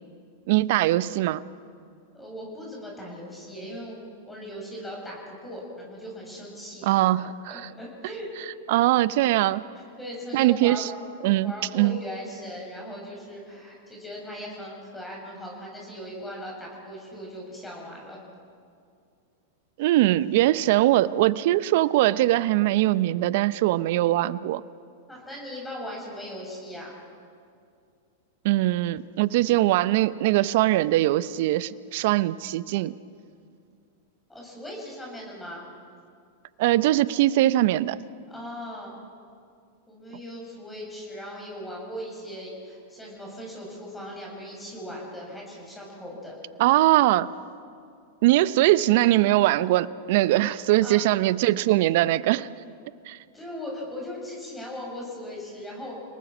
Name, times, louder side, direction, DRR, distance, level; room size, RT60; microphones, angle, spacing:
voice 1, 0.5-1.4 6.8-7.5 8.7-9.6 10.3-10.9 11.2-12.0 19.8-24.6 28.4-32.9 36.6-38.0 46.6-47.3 48.2-52.5 53.1-53.2, right 16 dB, 60° right, 17 dB, 0.7 m, -21 dB
voice 2, 2.1-4.0 4.3-6.9 7.5-8.3 9.7-10.9 11.4-18.2 25.1-26.9 34.3-35.6 38.3-39.0 39.9-46.4 50.3-51.0 53.3-55.9, left 1 dB, 10° left, -2 dB, 7.6 m, -39 dB
30.0 x 19.5 x 6.1 m, 2.3 s
hypercardioid pair, 110°, 0 cm